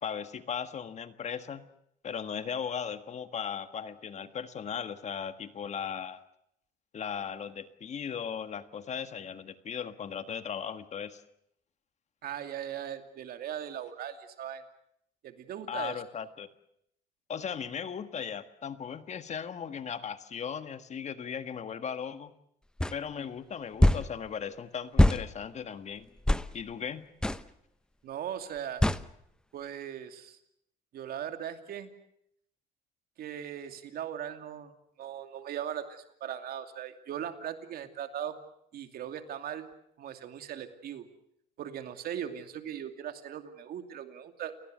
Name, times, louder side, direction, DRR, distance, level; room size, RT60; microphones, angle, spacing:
voice 1, 0.0-1.6 2.0-6.2 6.9-11.2 15.7-16.5 17.3-22.3 22.9-26.1 26.5-27.1, left 7 dB, 40° left, 11 dB, 1.6 m, -37 dB
voice 2, 12.2-14.6 15.2-16.0 28.0-28.9 29.5-30.4 30.9-31.9 33.2-34.7 35.0-38.4 38.7-39.7 40.0-41.1 41.6-44.6, right 9 dB, 65° right, 8 dB, 2.6 m, -39 dB
sound 1, 22.8-22.9 23.8-24.1 25.0-25.2 26.3-26.5 27.2-27.4 28.8-29.0, left 1 dB, 5° left, 0.9 m, -22 dB
29.0 x 18.5 x 8.0 m, 0.74 s
cardioid pair, 110°, 17 cm